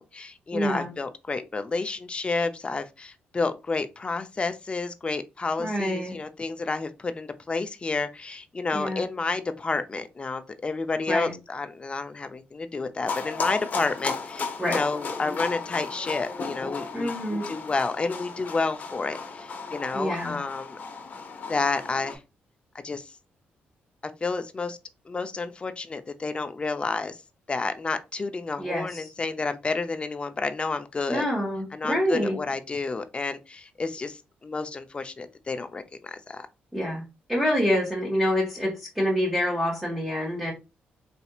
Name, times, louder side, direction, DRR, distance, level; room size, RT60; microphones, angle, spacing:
voice 1, 0.0-20.8 21.5-22.2 22.8-23.1 24.2-24.8 25.1-27.2 27.5-31.2 31.7-36.5, left 3 dB, 30° left, 0.5 m, -30 dB
voice 2, 0.5-0.9 5.6-6.1 8.7-9.0 11.1-11.3 14.6-14.8 16.9-17.4 19.9-20.4 28.6-29.0 31.1-32.4 36.7-37.0 37.3-40.5, equal, 5° right, 1.5 m, -26 dB
sound 1, 13.1-22.2, left 4 dB, 50° left, 0.9 m, -34 dB
4.3 x 2.7 x 2.4 m
cardioid pair, 85°, 4 cm